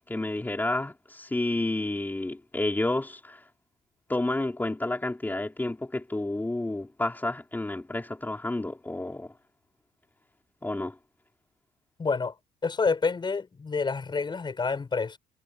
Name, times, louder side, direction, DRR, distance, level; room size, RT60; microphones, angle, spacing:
voice 1, 0.1-3.4 4.1-9.3 10.6-11.0, left 2 dB, 10° left, 4.3 m, -30 dB
voice 2, 12.0-12.3 12.6-15.2, left 4 dB, 25° left, 6.6 m, -28 dB
cardioid pair, 110°, 17 cm